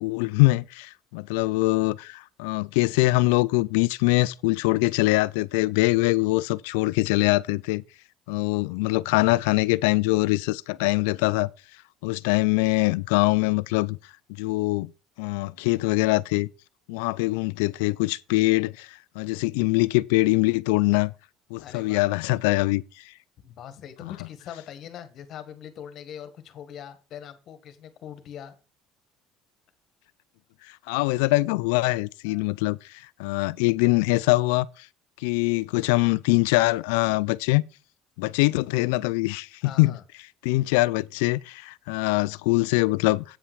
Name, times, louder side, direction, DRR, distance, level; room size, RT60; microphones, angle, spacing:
voice 1, 0.0-7.8 8.3-11.5 12.0-14.0 14.4-14.9 15.2-16.5 16.9-21.1 21.5-22.8 24.0-24.1 30.9-32.8 33.2-34.7 35.2-37.6 38.2-39.5 39.8-39.9 40.4-43.2, left 22 dB, 85° left, 0.4 m, -23 dB
voice 2, 21.6-22.1 23.4-28.5 32.3-32.5 39.6-40.0, left 9 dB, 55° left, 1.8 m, -42 dB
8.8 x 5.7 x 6.2 m
supercardioid pair, 95°, 0 cm